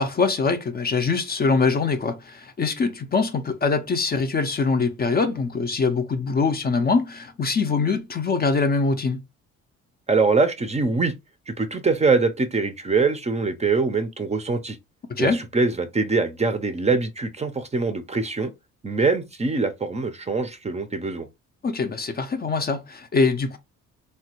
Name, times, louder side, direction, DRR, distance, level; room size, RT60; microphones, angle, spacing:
voice 1, 0.0-9.2 15.1-15.4 21.6-23.6, left 4 dB, 30° left, 0.5 m, -23 dB
voice 2, 10.1-11.1 11.5-14.8 15.2-18.5 18.8-21.3, right 4 dB, 20° right, 0.5 m, -23 dB
3.1 x 2.2 x 2.9 m
cardioid pair, 90°, 30 cm